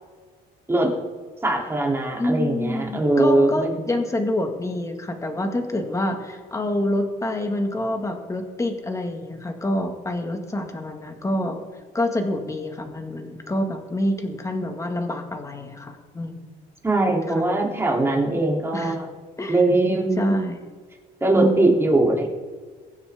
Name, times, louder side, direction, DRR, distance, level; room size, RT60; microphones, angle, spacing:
voice 1, 1.4-3.7 16.8-19.0 19.5-20.3 21.2-22.3, right 2 dB, 15° right, -1 dB, 3.3 m, -21 dB
voice 2, 2.2-11.7 11.9-16.4 17.3-17.4 18.7-19.0 19.4-19.6 20.2-20.6 21.4-21.8, left 1 dB, 20° left, 4 dB, 2.0 m, -27 dB
23.5 x 9.6 x 3.7 m, 1.5 s
cardioid pair, 110°, 17 cm